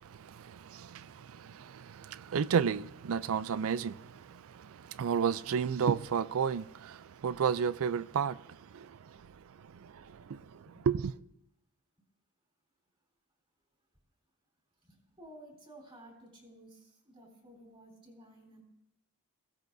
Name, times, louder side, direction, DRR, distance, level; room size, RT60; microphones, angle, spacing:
voice 1, 0.0-11.1, right 7 dB, 65° right, 0.4 m, -33 dB
voice 2, 14.8-18.6, right 1 dB, 25° right, 3.8 m, -54 dB
22.5 x 16.0 x 2.7 m
head